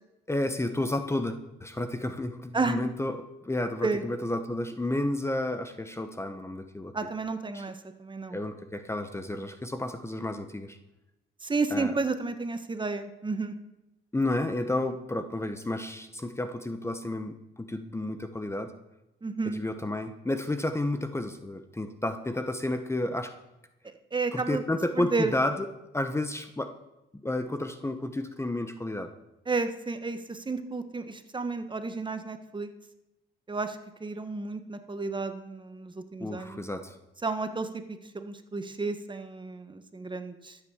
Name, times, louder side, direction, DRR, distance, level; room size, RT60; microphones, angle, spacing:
voice 1, 0.3-3.2 3.4-6.9 7.5-7.6 8.3-10.8 11.7-11.9 14.1-18.7 19.5-23.3 24.3-25.7 25.9-26.7 27.2-29.1 36.2-37.0, left 1 dB, 15° left, 9 dB, 1.0 m, -31 dB
voice 2, 6.9-8.4 11.4-13.5 19.2-19.6 23.8-24.6 24.9-25.3 29.5-32.7 33.5-36.6 37.2-40.6, right 3 dB, 25° right, 9 dB, 1.4 m, -32 dB
13.0 x 8.4 x 7.3 m, 0.93 s
cardioid pair, 90°, 20 cm